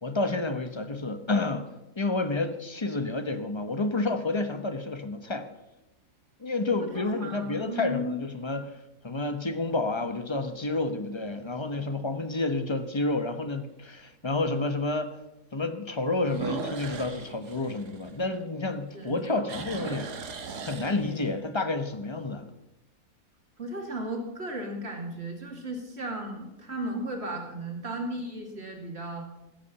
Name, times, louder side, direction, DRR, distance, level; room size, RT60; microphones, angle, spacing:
voice 1, 0.0-1.7 2.0-5.5 6.4-8.8 9.0-15.2 15.5-20.1 20.6-22.5, left 2 dB, 25° left, 9 dB, 0.8 m, -30 dB
sound 1, 2.6-3.2 3.9-4.0 9.2-9.7 10.2-10.3 10.8-10.9 11.2-11.3 12.8-12.9 16.2-18.7 19.1-21.4, right 5 dB, 80° right, 1.9 m, -39 dB
voice 2, 6.8-8.1 18.9-19.2 23.6-29.2, right 1 dB, 40° right, 2 dB, 2.8 m, -35 dB
16.0 x 8.4 x 7.0 m, 0.96 s
omnidirectional pair, 1.7 m